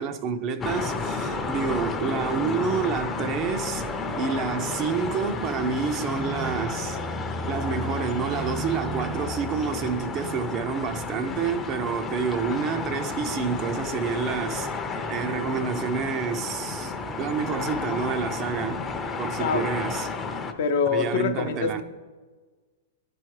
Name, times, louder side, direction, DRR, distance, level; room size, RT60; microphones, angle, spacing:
voice 1, 0.0-3.8 4.2-7.0 7.5-14.7 15.1-18.8 19.2-20.1 20.9-21.8, right 6 dB, 35° right, 0.4 m, -28 dB
sound 1, 0.6-20.5, left 3 dB, 20° left, 0.5 m, -31 dB
voice 2, 20.6-21.8, left 6 dB, 65° left, 0.6 m, -25 dB
10.5 x 4.6 x 3.1 m
hypercardioid pair, 125°, 0 cm